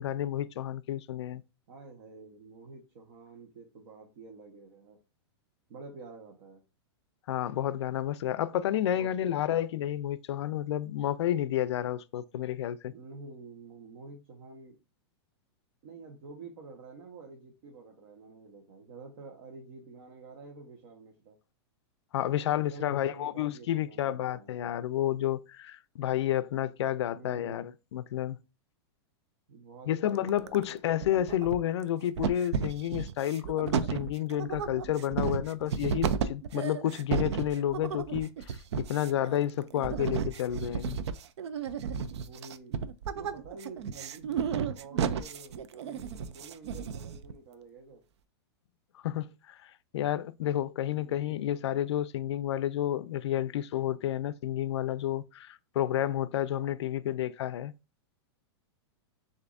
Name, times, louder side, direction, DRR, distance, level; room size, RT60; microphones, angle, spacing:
voice 1, 0.0-1.4 7.3-12.9 22.1-28.4 29.9-41.0 48.9-57.7, left 11 dB, 80° left, 0.4 m, -30 dB
voice 2, 1.7-5.0 5.7-6.6 8.9-9.4 12.8-14.8 15.8-21.4 22.5-24.5 27.0-27.7 29.5-30.8 39.8-40.2 42.2-42.9 43.1-48.0 50.9-51.4, right 4 dB, 55° right, 1.1 m, -49 dB
sound 1, 30.1-30.7 31.0-31.8 32.2-47.3, right 7 dB, 85° right, 0.5 m, -33 dB
6.6 x 2.6 x 2.6 m
supercardioid pair, 160°, 14 cm